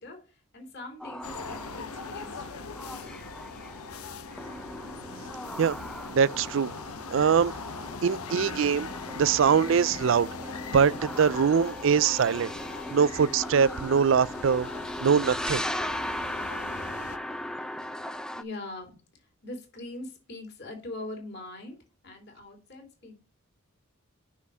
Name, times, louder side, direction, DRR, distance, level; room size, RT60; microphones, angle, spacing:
voice 1, 0.0-2.8 18.3-21.8 22.0-23.2, left 2 dB, 50° left, 3.1 m, -42 dB
sound 1, 1.0-18.4, left 1 dB, 5° left, 0.5 m, -38 dB
sound 2, 1.2-17.2, left 5 dB, 90° left, 0.9 m, -41 dB
voice 2, 6.1-6.7 7.1-7.5 8.0-8.9 9.2-10.3 10.7-12.5 12.9-14.7 15.0-15.6, right 6 dB, 60° right, 0.4 m, -23 dB
6.2 x 5.6 x 6.1 m
head